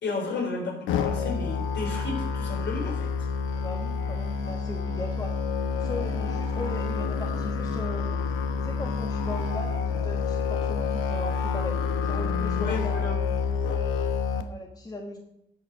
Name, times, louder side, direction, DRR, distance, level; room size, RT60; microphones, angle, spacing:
voice 1, 0.0-3.3 12.5-13.2, left 3 dB, 60° left, 1 dB, 3.4 m, -32 dB
Musical instrument, 0.9-14.4, left 5 dB, 85° left, 1.0 m, -28 dB
voice 2, 3.5-5.3 5.8-8.1 8.6-12.9 14.5-15.2, left 1 dB, 20° left, 2 dB, 1.4 m, -38 dB
10.5 x 6.6 x 5.2 m, 0.80 s
cardioid pair, 90°, 20 cm